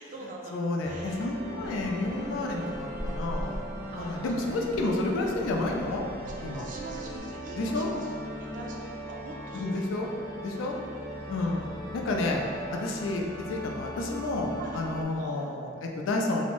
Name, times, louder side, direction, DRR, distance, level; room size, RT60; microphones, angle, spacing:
voice 1, 0.0-1.2 1.5-2.8 3.9-4.5 4.7-4.9 5.2-5.5 6.2-9.8 10.6-10.9 11.4-11.6 14.6-14.8 15.1-15.5, right 2 dB, 45° right, -1 dB, 0.3 m, -44 dB
voice 2, 0.5-6.0 6.4-6.7 7.5-7.9 9.5-10.1 10.4-10.8 11.3-12.4 12.7-16.4, left 2 dB, 85° left, 1 dB, 0.3 m, -30 dB
sound 1, 0.8-15.0, equal, 15° left, 0.5 m, -40 dB
sound 2, 1.6-7.2, equal, 60° left, 0.7 m, -41 dB
2.6 x 2.0 x 2.9 m, 2.4 s
head